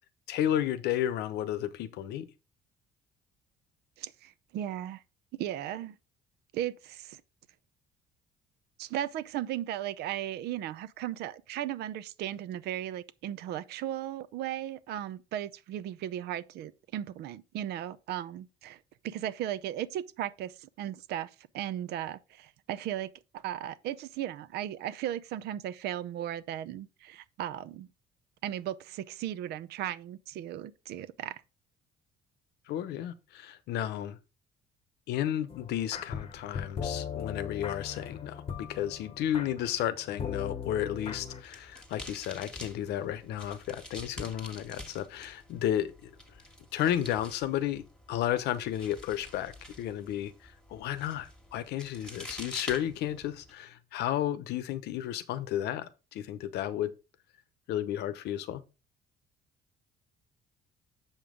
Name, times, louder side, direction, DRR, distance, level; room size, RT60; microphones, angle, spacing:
voice 1, 0.3-2.3 32.7-34.2 35.1-46.1 46.7-56.9 57.7-58.6, left 11 dB, 80° left, 0.8 m, -33 dB
voice 2, 4.0-5.0 5.4-5.9 6.5-7.2 8.8-27.9 28.4-31.4, right 11 dB, 75° right, 0.6 m, -36 dB
sound 1, 35.5-41.4, left 7 dB, 35° left, 0.9 m, -39 dB
sound 2, 41.2-53.5, left 1 dB, 5° left, 1.5 m, -47 dB
7.2 x 5.3 x 3.7 m
cardioid pair, 110°, 17 cm